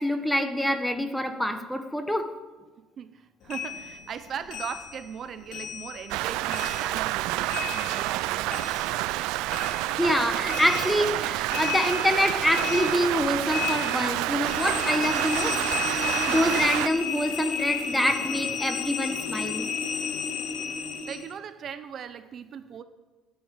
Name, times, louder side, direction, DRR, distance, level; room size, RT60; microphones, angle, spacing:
voice 1, 0.0-2.4 10.0-15.6 16.3-19.6, equal, 5° left, 8 dB, 1.1 m, -26 dB
voice 2, 2.8-9.0 21.0-22.8, right 8 dB, 40° right, 11 dB, 0.7 m, -39 dB
sound 1, 3.5-6.2 6.5-9.2 9.5-21.3, left 6 dB, 65° left, 2.2 m, -33 dB
Rain, 6.1-16.9, right 17 dB, 85° right, 0.4 m, -28 dB
17.0 x 9.4 x 7.5 m, 1.3 s
cardioid pair, 150°, 0 cm